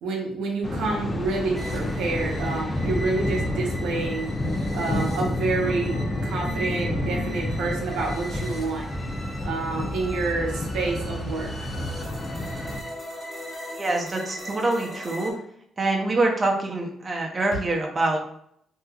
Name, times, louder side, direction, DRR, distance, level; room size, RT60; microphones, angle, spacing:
voice 1, 0.0-4.3 4.7-6.0 6.2-8.9 9.4-11.7, right 3 dB, 90° right, -1 dB, 0.7 m, -28 dB
Thunder, 0.6-12.8, left 1 dB, 25° left, 0.6 m, -29 dB
sound 1, 1.5-15.3, equal, 5° right, 0.9 m, -39 dB
sound 2, 4.5-4.8 5.0-11.7, left 5 dB, 80° left, 1.2 m, -44 dB
voice 2, 13.8-15.3 15.8-18.2, right 2 dB, 30° right, 0 dB, 0.6 m, -25 dB
3.2 x 2.7 x 2.3 m, 0.69 s
cardioid pair, 90°, 0 cm